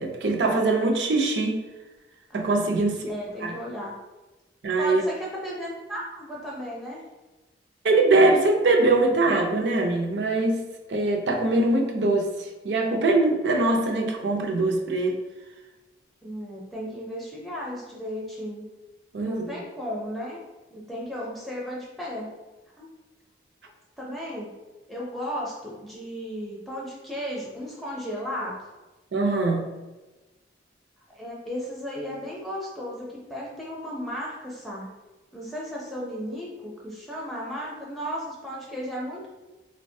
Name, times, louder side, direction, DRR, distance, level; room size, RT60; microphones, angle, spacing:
voice 1, 0.0-1.6 2.3-3.0 3.4-3.5 4.6-5.0 7.8-10.6 10.9-12.3 12.6-15.2 19.1-19.6 29.1-29.7, right 2 dB, 80° right, 2 dB, 0.5 m, -22 dB
voice 2, 2.3-3.9 4.8-7.0 16.2-18.7 19.2-20.4 20.7-22.3 22.8-22.9 24.0-24.5 24.9-28.6 31.1-34.9 35.3-39.3, equal, ahead, -5 dB, 0.5 m, -35 dB
3.8 x 2.1 x 2.6 m, 1.1 s
head